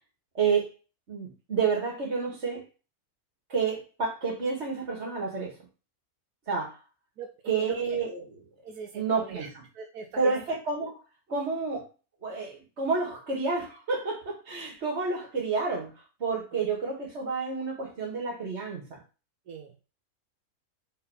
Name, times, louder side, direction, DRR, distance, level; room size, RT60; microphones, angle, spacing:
voice 1, 0.3-0.7 1.1-2.6 3.5-5.5 6.5-6.8 7.5-8.4 8.9-9.6 10.2-11.0 11.3-11.8 12.2-15.9 16.2-19.0, right 4 dB, 45° right, 2.3 m, -29 dB
voice 2, 8.6-9.5 9.7-10.3 16.5-16.7 19.5-19.7, right 5 dB, 80° right, 1.3 m, -41 dB
5.4 x 4.2 x 5.6 m
omnidirectional pair, 1.6 m